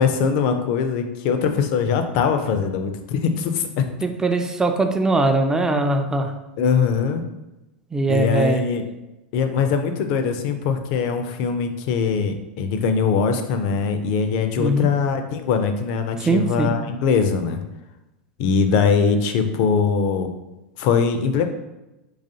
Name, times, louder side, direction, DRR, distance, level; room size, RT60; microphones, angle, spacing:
voice 1, 0.0-3.9 6.6-7.2 8.1-8.8 9.3-17.6 18.4-20.3 20.8-21.5, left 6 dB, 55° left, 7 dB, 0.5 m, -21 dB
voice 2, 4.0-6.3 7.9-8.6 14.6-14.9 16.3-16.7, right 2 dB, 10° right, 6 dB, 0.4 m, -21 dB
3.9 x 3.0 x 2.7 m, 0.99 s
hypercardioid pair, 110°, 6 cm